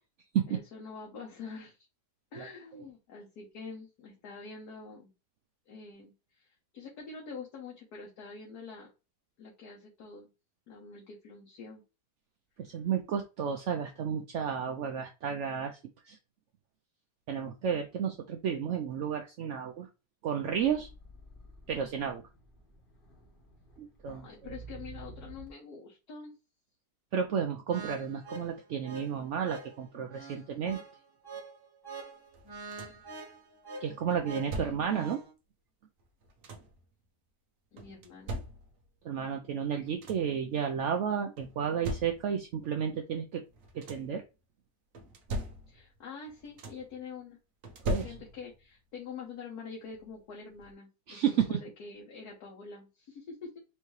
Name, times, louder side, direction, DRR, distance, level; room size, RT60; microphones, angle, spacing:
voice 1, 0.5-1.8 2.3-5.1 5.7-6.5 6.7-8.9 9.4-10.3 10.7-11.8 24.2-26.3 34.3-34.9 37.7-38.4 45.7-47.4 47.8-53.6, left 4 dB, 65° left, -2 dB, 1.5 m, -46 dB
voice 2, 12.6-15.8 16.0-16.2 17.3-19.9 20.2-20.9 21.7-22.2 23.8-24.5 27.1-30.8 33.8-35.2 39.0-43.4 43.7-44.2 47.8-48.0 51.1-51.6, right 8 dB, 80° right, 4 dB, 0.6 m, -32 dB
sound 1, 20.5-25.5, right 3 dB, 35° left, 1.2 m, -51 dB
sound 2, 27.7-35.3, right 2 dB, 25° right, 0.5 m, -45 dB
sound 3, 32.3-33.1 34.1-35.1 36.0-36.9 37.8-39.0 39.5-39.6 39.8-40.4 41.4-42.5 43.5-44.2 44.9-46.0 46.2-47.0 47.6-48.6 49.9-50.0 50.5-50.7, right 1 dB, 60° right, 1.1 m, -40 dB
4.5 x 2.8 x 3.1 m, 0.29 s
omnidirectional pair, 1.8 m